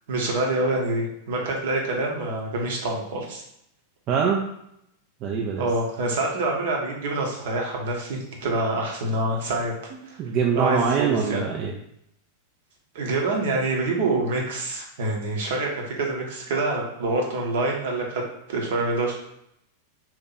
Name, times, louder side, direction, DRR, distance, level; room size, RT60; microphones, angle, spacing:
voice 1, 0.1-3.4 5.6-9.7 10.0-10.2 10.5-11.4 12.9-18.2 18.5-19.1, right 2 dB, 55° right, 0 dB, 0.8 m, -26 dB
voice 2, 4.1-4.5 5.2-5.7 9.9-11.7, right 6 dB, 35° right, -2 dB, 0.4 m, -24 dB
2.8 x 2.5 x 3.9 m, 0.77 s
figure-of-eight pair, 90°, 0 cm